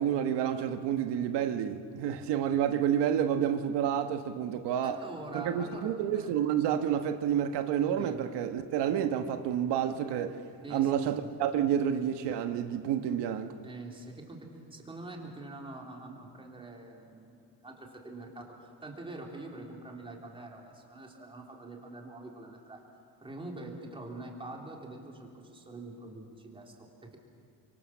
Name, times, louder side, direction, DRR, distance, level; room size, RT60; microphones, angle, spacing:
voice 1, 0.0-5.0 5.3-10.4 10.7-13.5, right 9 dB, 85° right, 1.4 m, -29 dB
voice 2, 4.8-6.3 8.0-8.2 10.6-11.3 13.6-22.8 23.2-27.2, right 2 dB, 15° right, 3.4 m, -45 dB
29.5 x 25.5 x 7.3 m
cardioid pair, 175°, 40 cm